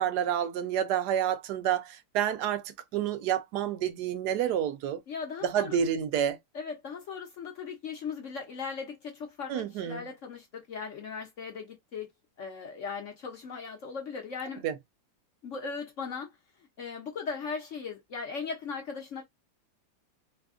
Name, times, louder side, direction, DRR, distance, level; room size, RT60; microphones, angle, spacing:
voice 1, 0.0-5.0 5.4-6.4 9.5-10.0 14.6-14.7, right 9 dB, 70° right, 1.0 m, -29 dB
voice 2, 5.1-5.8 6.5-12.1 12.4-14.6 15.4-16.3 16.8-19.2, left 5 dB, 55° left, 0.8 m, -38 dB
3.3 x 2.2 x 3.5 m
omnidirectional pair, 2.1 m